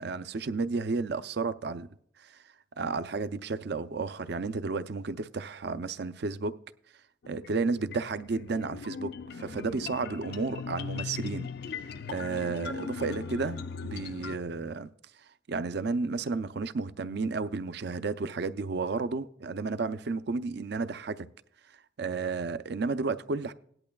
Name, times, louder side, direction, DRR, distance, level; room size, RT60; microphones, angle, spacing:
voice 1, 0.0-1.9 2.2-2.4 2.8-6.6 7.3-11.5 12.1-14.9 15.5-21.3 22.0-23.5, right 4 dB, 55° right, 0.5 m, -32 dB
sound 1, 7.2-14.4, left 5 dB, 55° left, 0.4 m, -39 dB
17.5 x 11.0 x 2.3 m
head